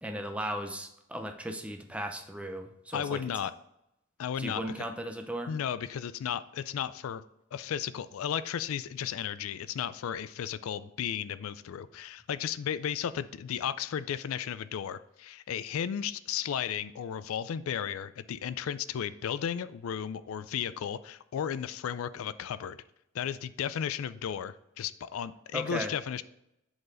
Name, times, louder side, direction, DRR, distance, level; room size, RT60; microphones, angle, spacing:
voice 1, 0.0-3.2 4.4-5.5 25.5-25.9, equal, 5° right, 5 dB, 0.5 m, -36 dB
voice 2, 2.9-3.5 4.2-4.6 5.5-7.2 7.5-22.8 23.1-26.2, left 8 dB, 85° left, 15 dB, 0.3 m, -34 dB
7.9 x 4.0 x 3.8 m, 0.85 s
head